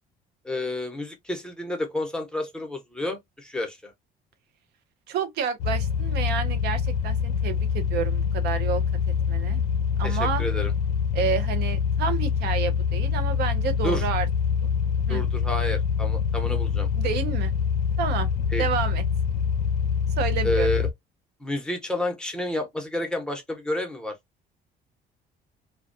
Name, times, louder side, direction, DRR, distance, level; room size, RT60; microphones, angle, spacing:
voice 1, 0.4-3.9 10.0-10.7 13.8-14.1 15.1-16.9 18.5-18.6 20.4-20.9 21.4-24.2, left 1 dB, 5° left, 0.8 m, -30 dB
voice 2, 5.1-8.8 9.3-9.6 10.0-10.5 11.1-14.3 15.1-15.2 17.0-17.5 18.0-18.3 18.6-19.0 20.2-20.7, right 7 dB, 75° right, 0.5 m, -29 dB
sound 1, 5.6-20.9, left 7 dB, 85° left, 0.4 m, -25 dB
2.2 x 2.2 x 2.5 m
cardioid pair, 110°, 17 cm